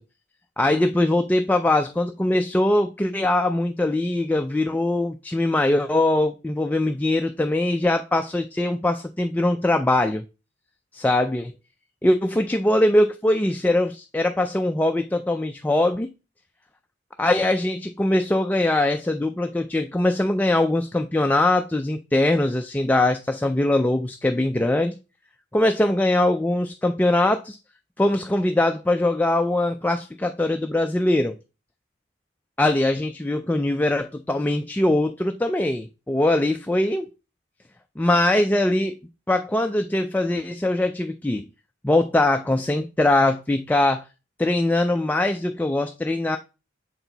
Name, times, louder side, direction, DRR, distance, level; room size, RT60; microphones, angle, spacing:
voice 1, 0.6-10.2 10.9-11.5 12.0-16.1 17.2-24.9 25.5-27.6 28.0-31.4 32.6-37.1 38.0-39.0 39.3-41.4 41.8-44.0 44.4-46.4, left 1 dB, 10° left, 0.3 m, -22 dB
6.7 x 4.4 x 3.9 m
head